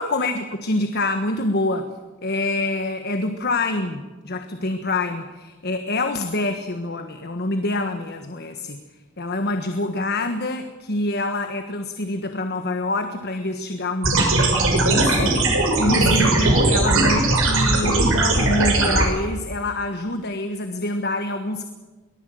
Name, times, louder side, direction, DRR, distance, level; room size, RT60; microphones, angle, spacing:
voice 1, 0.0-1.9 2.2-8.8 9.2-21.6, left 2 dB, 50° left, 7 dB, 1.4 m, -26 dB
sound 1, 14.0-19.0, right 2 dB, 70° right, 5.9 m, -19 dB
23.5 x 19.0 x 7.8 m, 1.2 s
head